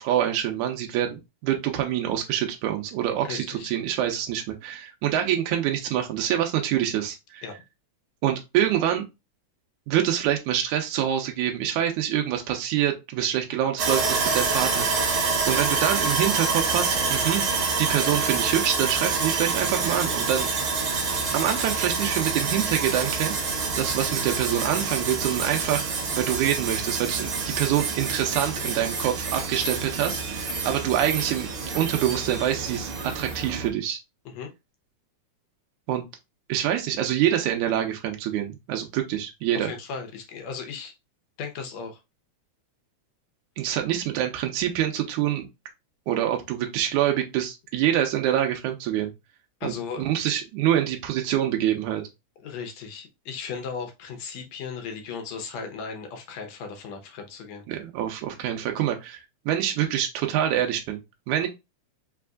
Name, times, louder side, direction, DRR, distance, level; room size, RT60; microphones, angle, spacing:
voice 1, 0.0-7.4 8.2-9.0 9.9-15.1 15.5-17.5 17.8-20.5 21.3-23.3 23.8-25.8 26.2-32.9 33.1-34.0 35.9-36.1 36.5-39.7 43.6-45.5 46.1-49.1 49.6-49.7 50.0-52.0 57.7-59.2 59.5-61.0 61.3-61.5, right 11 dB, 90° right, 3 dB, 2.1 m, -26 dB
voice 2, 3.3-3.7 7.4-7.6 34.3-34.5 39.5-40.9 41.4-42.0 49.6-50.0 52.4-57.6, left 5 dB, 70° left, 4 dB, 2.0 m, -36 dB
Sawing, 13.8-33.7, right 4 dB, 60° right, 1.7 m, -27 dB
5.2 x 3.4 x 2.4 m, 0.23 s
omnidirectional pair, 3.4 m